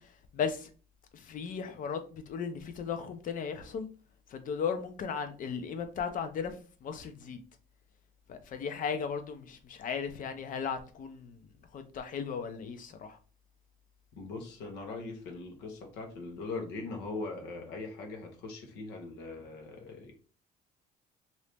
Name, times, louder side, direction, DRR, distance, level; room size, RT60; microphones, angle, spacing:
voice 1, 0.3-0.7 1.1-3.9 4.3-6.5 6.8-7.4 8.3-11.4 11.7-13.2, left 6 dB, 50° left, 0.6 m, -36 dB
voice 2, 14.2-20.1, left 3 dB, 90° left, 1.0 m, -41 dB
2.9 x 2.7 x 3.4 m
cardioid pair, 110°, 17 cm